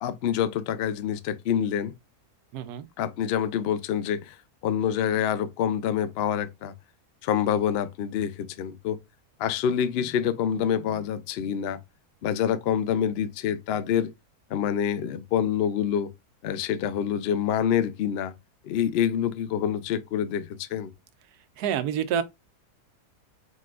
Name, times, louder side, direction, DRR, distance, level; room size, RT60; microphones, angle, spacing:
voice 1, 0.0-1.9 3.0-4.4 4.6-6.7 7.2-9.0 9.4-11.8 12.2-14.1 14.5-16.1 16.4-18.3 18.6-20.9, left 9 dB, 80° left, 0.5 m, -26 dB
voice 2, 2.5-2.9 21.6-22.2, right 8 dB, 90° right, 1.2 m, -27 dB
4.2 x 3.9 x 2.4 m
omnidirectional pair, 1.6 m